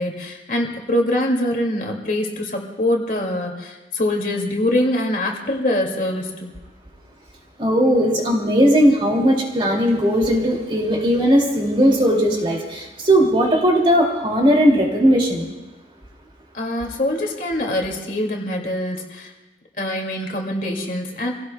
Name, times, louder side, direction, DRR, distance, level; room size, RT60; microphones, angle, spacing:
voice 1, 0.0-6.5 16.5-19.3 19.8-21.3, left 1 dB, 50° left, 1 dB, 2.3 m, -24 dB
voice 2, 7.6-15.5, equal, 30° right, 0 dB, 2.5 m, -17 dB
27.0 x 17.0 x 2.3 m, 1.2 s
head